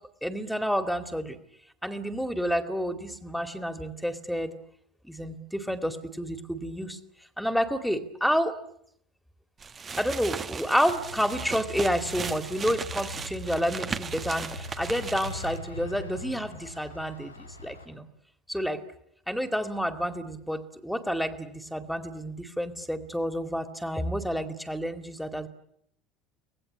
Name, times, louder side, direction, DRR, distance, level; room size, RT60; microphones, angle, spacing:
voice 1, 0.2-1.4 1.8-4.5 5.0-7.0 7.4-8.6 10.0-18.1 18.5-18.8 19.3-25.5, equal, ahead, 10 dB, 2.3 m, -29 dB
sound 1, 9.6-15.6, right 5 dB, 25° right, 1.3 m, -37 dB
sound 2, 10.9-17.9, left 2 dB, 85° left, 5.0 m, -42 dB
25.0 x 19.0 x 9.9 m, 0.74 s
figure-of-eight pair, 65°, 0 cm